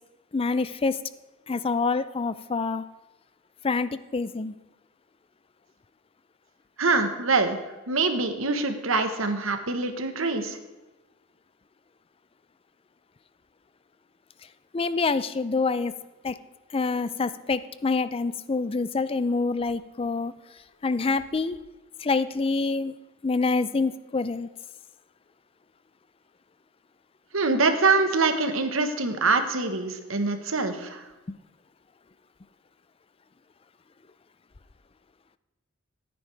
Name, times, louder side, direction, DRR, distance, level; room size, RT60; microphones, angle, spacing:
voice 1, 0.3-1.0 1.5-2.8 3.6-4.6 14.7-15.9 16.2-16.4 16.7-20.3 20.8-21.6 22.0-22.9 23.2-24.5 31.3-31.4, left 4 dB, 25° left, 15 dB, 0.4 m, -26 dB
voice 2, 6.8-7.6 7.9-10.6 27.3-31.0, right 3 dB, 70° right, 8 dB, 1.2 m, -24 dB
15.5 x 9.3 x 3.4 m, 1.1 s
head